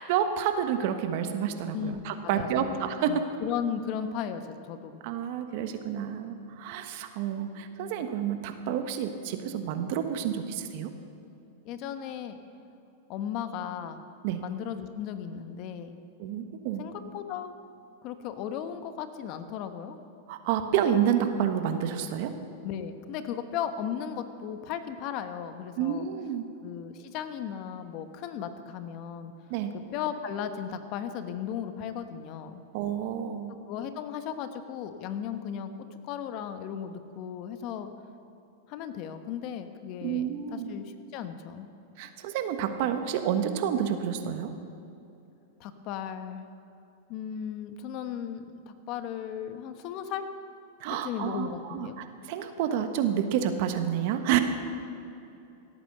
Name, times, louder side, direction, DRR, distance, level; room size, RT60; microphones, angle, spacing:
voice 1, 0.1-3.1 5.0-10.9 14.2-14.4 16.2-16.9 20.3-22.3 25.8-26.5 29.5-29.7 32.7-33.5 40.0-40.7 42.0-44.5 50.8-54.4, right 9 dB, 60° right, 8 dB, 1.3 m, -29 dB
voice 2, 1.7-2.8 3.1-5.0 11.6-12.4 13.1-14.0 14.4-16.0 16.8-17.5 18.0-20.0 22.6-26.1 26.6-29.3 29.9-32.6 33.7-35.7 36.0-37.9 38.7-41.7 45.6-46.5 47.1-50.2 50.9-52.0, left 8 dB, 50° left, 9 dB, 1.1 m, -36 dB
17.0 x 8.9 x 6.6 m, 2.7 s
hypercardioid pair, 115°, 0 cm